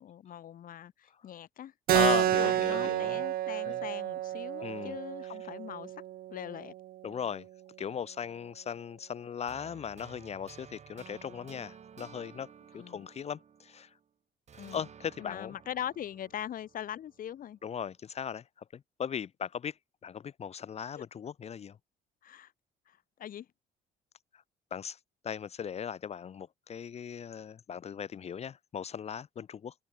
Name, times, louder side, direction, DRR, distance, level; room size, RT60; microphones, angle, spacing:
voice 1, 0.0-1.7 2.4-5.9 6.3-6.7 12.7-13.1 14.6-14.9 15.2-17.6 20.9-21.0 22.2-22.5 22.9-23.5, left 10 dB, 55° left, 4.0 m, -41 dB
voice 2, 1.9-3.2 3.6-3.8 4.6-5.0 7.0-7.5 7.8-13.9 14.7-15.5 17.6-18.4 18.7-19.7 20.0-21.8 24.7-25.0 25.2-29.7, left 7 dB, 40° left, 1.0 m, -37 dB
Keyboard (musical), 1.9-7.0, right 13 dB, 60° right, 0.8 m, -30 dB
sound 1, 9.5-14.0 14.5-17.6, right 7 dB, 40° right, 7.8 m, -54 dB
cardioid pair, 110°, 17 cm